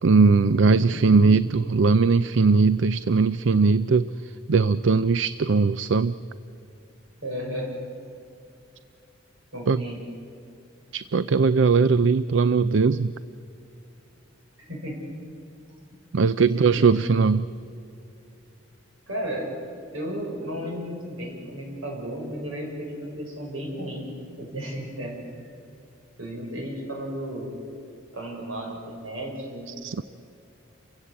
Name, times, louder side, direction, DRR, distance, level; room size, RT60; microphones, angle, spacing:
voice 1, 0.0-6.2 9.7-9.8 10.9-13.1 16.1-17.5 29.7-30.0, right 4 dB, 65° right, 15 dB, 0.5 m, -20 dB
voice 2, 0.6-1.2 7.2-7.7 9.5-10.1 14.6-15.0 16.5-17.0 19.1-19.5 19.9-24.0 24.4-25.2 25.4-25.5 26.2-27.5 28.1-29.7, equal, 80° right, 0 dB, 6.7 m, -34 dB
29.5 x 16.0 x 8.2 m, 2.7 s
head